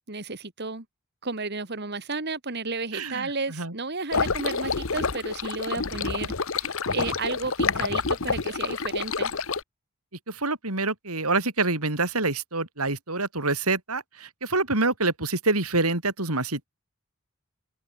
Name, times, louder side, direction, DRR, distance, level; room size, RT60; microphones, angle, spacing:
voice 1, 0.1-0.8 1.2-9.3, right 3 dB, 50° right, 2.3 m, -33 dB
voice 2, 2.9-3.7 10.3-16.6, right 3 dB, 85° right, 6.5 m, -26 dB
sound 1, 4.1-9.6, left 4 dB, 65° left, 1.2 m, -28 dB
head